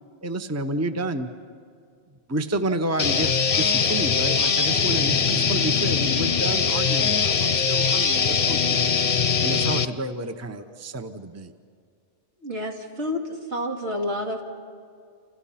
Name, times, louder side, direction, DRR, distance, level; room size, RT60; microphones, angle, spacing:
voice 1, 0.2-1.3 2.3-8.8 9.4-11.5, right 1 dB, 15° right, 8 dB, 0.8 m, -30 dB
sound 1, 3.0-9.8, left 6 dB, 45° left, 0.8 m, -22 dB
voice 2, 12.4-14.5, left 1 dB, 70° right, 1 dB, 2.8 m, -29 dB
29.5 x 27.5 x 5.8 m, 2.2 s
omnidirectional pair, 1.2 m